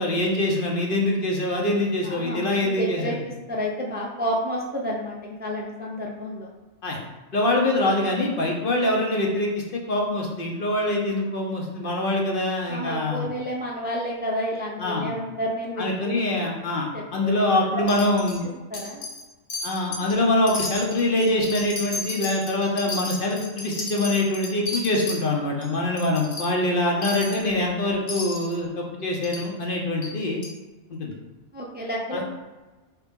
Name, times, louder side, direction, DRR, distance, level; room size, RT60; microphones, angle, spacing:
voice 1, 0.0-3.2 6.8-7.0 7.3-13.3 14.8-15.1 15.8-18.5 19.6-30.4 30.9-31.1 32.1-32.2, left 1 dB, 50° left, -1 dB, 0.8 m, -24 dB
voice 2, 2.0-3.2 3.5-6.5 12.7-16.2 16.9-17.3 18.7-19.1 31.5-32.2, equal, 15° right, -3 dB, 0.3 m, -30 dB
Wind chime, 17.9-18.4 18.7-19.2 19.5-20.1 20.5-25.2 25.6-25.7 26.0-26.5 27.0-27.4 28.1-28.5 29.2-29.4 30.0-30.1 30.4-30.5, left 2 dB, 80° left, 1.3 m, -33 dB
4.8 x 3.0 x 3.5 m, 1.2 s
omnidirectional pair, 1.3 m